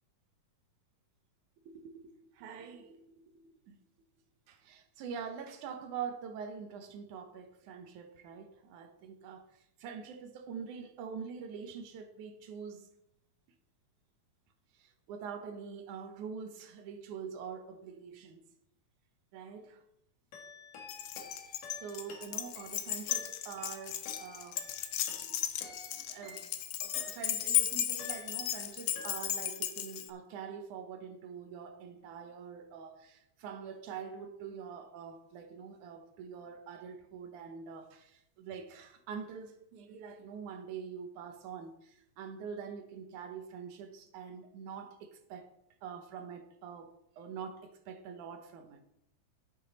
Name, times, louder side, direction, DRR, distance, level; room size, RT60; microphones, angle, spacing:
voice 1, 1.7-3.0 3.7-3.8 4.5-12.9 14.7-18.4 19.3-19.8 21.8-24.7 25.9-26.5 26.8-45.5 45.8-48.8, right 6 dB, 70° right, 2.3 m, -45 dB
sound 1, 20.3-27.6 28.0-28.7 29.0-29.6, left 4 dB, 60° left, 2.7 m, -51 dB
Keys jangling, 20.9-30.1, left 11 dB, 80° left, 1.4 m, -35 dB
10.5 x 9.3 x 4.1 m
omnidirectional pair, 3.8 m